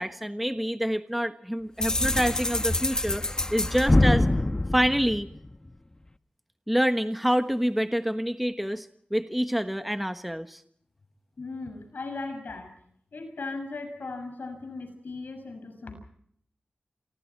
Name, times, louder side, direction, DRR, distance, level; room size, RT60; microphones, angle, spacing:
voice 1, 0.0-3.2 3.5-4.3 4.7-5.3 6.7-8.9 9.1-10.6, equal, ahead, 9 dB, 1.3 m, -27 dB
sound 1, 1.8-5.7, left 1 dB, 20° left, 1.1 m, -25 dB
voice 2, 11.4-12.7 13.1-16.0, left 3 dB, 75° left, 7 dB, 6.8 m, -37 dB
28.5 x 24.5 x 4.5 m, 0.66 s
wide cardioid pair, 85°, 3 cm